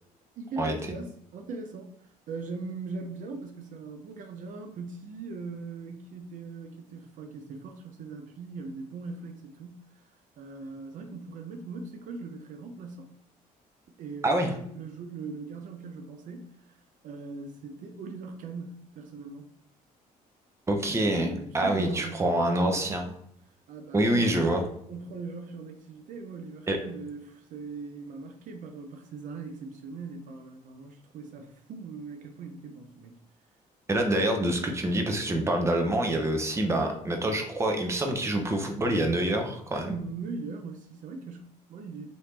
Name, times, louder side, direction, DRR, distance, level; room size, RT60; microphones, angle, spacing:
voice 1, 0.4-10.0 10.4-13.1 13.9-16.8 17.0-19.5 20.9-22.9 23.7-24.4 24.9-33.2 39.9-42.1, right 4 dB, 60° right, 4 dB, 0.5 m, -40 dB
voice 2, 20.7-23.0 23.9-24.6 26.7-26.8 33.9-39.9, right 1 dB, 20° right, 3 dB, 0.7 m, -26 dB
2.9 x 2.6 x 3.5 m, 0.70 s
cardioid pair, 95°, 15 cm